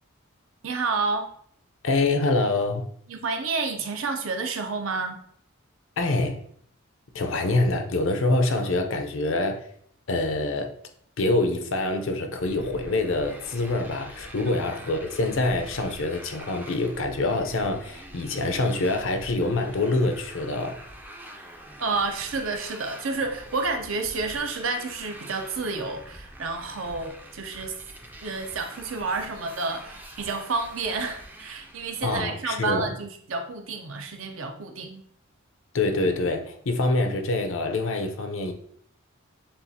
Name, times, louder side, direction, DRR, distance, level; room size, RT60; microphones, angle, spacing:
voice 1, 0.6-1.3 3.1-5.2 14.5-14.6 21.8-27.8 28.2-35.0, right 4 dB, 70° right, 0.7 m, -30 dB
voice 2, 1.8-2.9 6.0-6.4 7.1-9.6 10.1-10.7 11.2-20.8 32.0-32.9 35.7-38.5, left 2 dB, 65° left, 0.6 m, -25 dB
Motorcycle, 12.4-32.2, right 1 dB, 10° right, 0.4 m, -45 dB
7.0 x 2.4 x 2.7 m
head